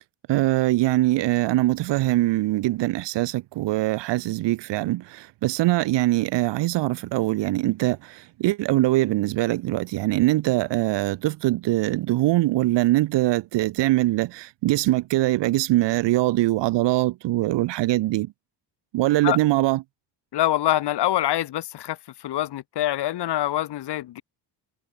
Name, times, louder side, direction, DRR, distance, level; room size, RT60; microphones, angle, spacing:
voice 1, 0.3-18.3 18.9-19.8, right 17 dB, 70° right, 1.2 m, -22 dB
voice 2, 20.3-24.2, left 13 dB, 65° left, 6.6 m, -25 dB
cardioid pair, 155°, 44 cm